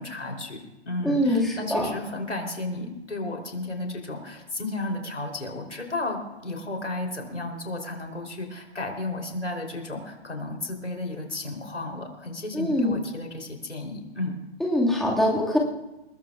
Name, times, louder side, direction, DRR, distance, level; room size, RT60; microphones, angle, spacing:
voice 1, 0.0-14.4, left 2 dB, 85° left, 2 dB, 3.7 m, -33 dB
voice 2, 1.0-1.8 12.5-12.9 14.6-15.6, left 1 dB, ahead, -4 dB, 2.1 m, -23 dB
23.0 x 20.0 x 2.5 m, 0.97 s
figure-of-eight pair, 130°, 35 cm